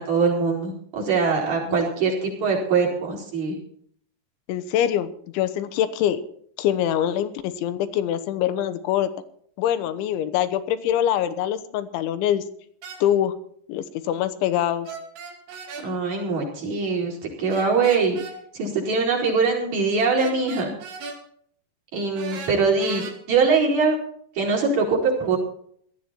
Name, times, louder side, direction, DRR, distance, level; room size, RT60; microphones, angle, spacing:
voice 1, 0.0-3.6 15.8-18.2 18.5-20.7 21.9-24.0 24.4-25.4, right 4 dB, 40° right, -2 dB, 5.3 m, -22 dB
voice 2, 4.5-6.2 6.6-9.1 9.6-12.4 13.0-13.3 13.7-14.9, left 10 dB, 85° left, 11 dB, 3.5 m, -24 dB
sound 1, 12.8-13.0 14.8-15.9 17.5-18.4 20.2-21.2 22.2-23.1, right 5 dB, 75° right, 4.8 m, -36 dB
18.5 x 13.0 x 4.4 m, 0.62 s
omnidirectional pair, 5.3 m